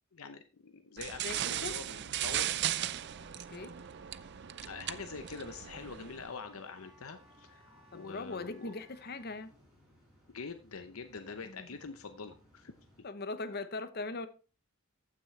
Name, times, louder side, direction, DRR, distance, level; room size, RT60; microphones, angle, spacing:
voice 1, 0.1-2.5 4.6-8.7 10.3-12.7, left 4 dB, 80° left, 0.8 m, -45 dB
sound 1, 1.0-6.3, right 12 dB, 55° right, 0.4 m, -37 dB
voice 2, 1.2-1.7 3.5-3.7 7.9-9.5 11.4-11.7 13.0-14.3, left 3 dB, 45° left, 0.8 m, -40 dB
Wind instrument woodwind instrument, 1.8-9.3, equal, 20° right, 6.1 m, -63 dB
sound 2, 5.0-13.0, equal, 5° right, 4.0 m, -64 dB
14.5 x 6.1 x 3.2 m
head